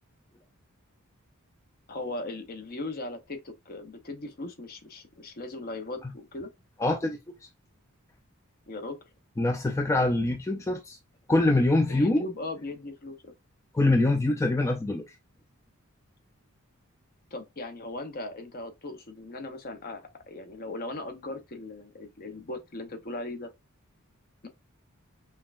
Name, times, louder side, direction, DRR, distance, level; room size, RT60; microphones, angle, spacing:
voice 1, 1.9-6.5 8.7-9.0 11.7-13.3 17.3-23.5, left 2 dB, 45° left, 0.7 m, -38 dB
voice 2, 6.8-7.2 9.4-11.0 11.3-12.2 13.7-15.0, left 2 dB, 15° left, 0.3 m, -24 dB
5.6 x 2.2 x 2.4 m
head